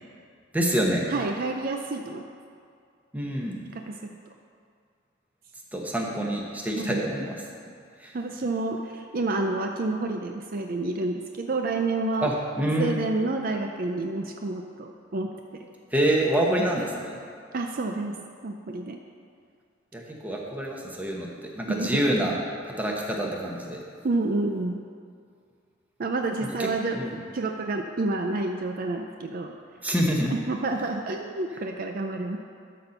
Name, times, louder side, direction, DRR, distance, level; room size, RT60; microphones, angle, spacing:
voice 1, 0.5-1.1 3.1-3.6 5.7-7.3 8.0-8.1 12.2-13.0 15.9-17.2 19.9-21.3 21.5-22.4 22.8-23.8 26.6-27.2 29.8-30.3, right 1 dB, 10° right, -2 dB, 1.1 m, -26 dB
voice 2, 1.1-2.2 3.7-4.0 6.8-7.1 8.1-12.3 12.8-15.3 16.6-16.7 17.5-18.2 18.4-19.0 21.7-22.0 24.0-24.8 26.0-27.0 27.3-29.5 30.3-32.4, right 2 dB, 50° right, 3 dB, 0.5 m, -29 dB
12.5 x 4.3 x 6.5 m, 2.3 s
head